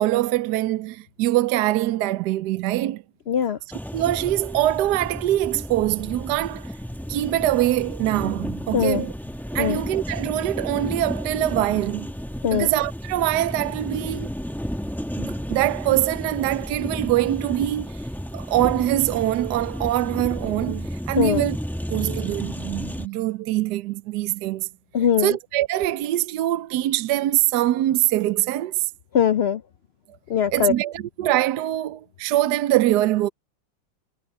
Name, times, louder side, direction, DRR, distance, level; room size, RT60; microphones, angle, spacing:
voice 1, 0.0-3.0 3.9-6.7 7.1-9.1 9.5-12.1 12.5-14.3 15.2-18.0 18.3-21.6 21.9-24.7 25.2-28.9 30.5-33.3, right 14 dB, 75° right, 1.2 m, -23 dB
voice 2, 3.3-3.6 8.7-9.1 9.6-9.8 12.4-12.7 21.2-21.4 24.9-25.4 29.1-29.6 30.3-30.7, left 8 dB, 80° left, 0.5 m, -21 dB
sound 1, 3.7-23.1, equal, ahead, 0.9 m, -32 dB
omnidirectional pair, 1.8 m